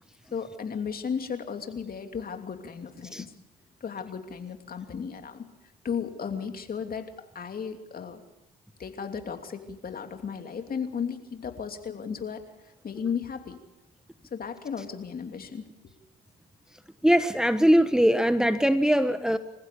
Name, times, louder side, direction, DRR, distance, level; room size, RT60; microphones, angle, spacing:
voice 1, 0.3-3.3 3.8-5.5 5.8-8.2 8.8-13.6 14.3-15.9, left 6 dB, 45° left, 2.9 m, -35 dB
voice 2, 17.0-19.4, equal, 5° right, 1.2 m, -21 dB
29.0 x 15.5 x 7.0 m
hypercardioid pair, 55°, 21 cm